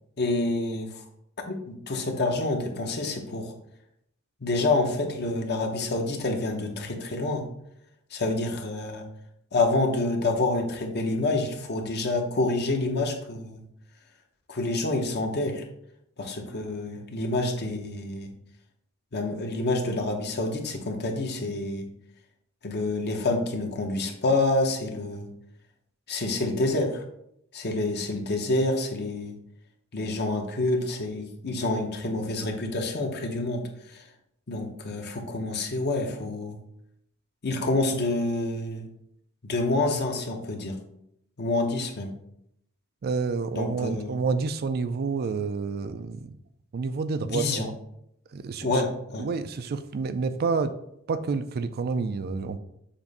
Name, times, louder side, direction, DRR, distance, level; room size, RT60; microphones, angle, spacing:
voice 1, 0.2-1.0 1.4-3.5 4.4-7.4 8.1-9.1 9.5-13.6 14.5-15.6 16.2-18.3 19.1-21.9 22.6-25.3 26.1-27.0 27.5-29.3 29.9-33.6 33.9-34.0 34.5-36.6 37.4-38.8 39.4-40.8 41.4-42.1 43.5-44.1 47.2-47.7 48.6-49.3, left 2 dB, 50° left, 3 dB, 1.0 m, -27 dB
voice 2, 43.0-46.3 46.7-47.7 48.3-48.8 49.2-50.7 51.1-52.6, right 4 dB, 45° right, 11 dB, 0.4 m, -29 dB
7.0 x 2.6 x 5.3 m, 0.76 s
head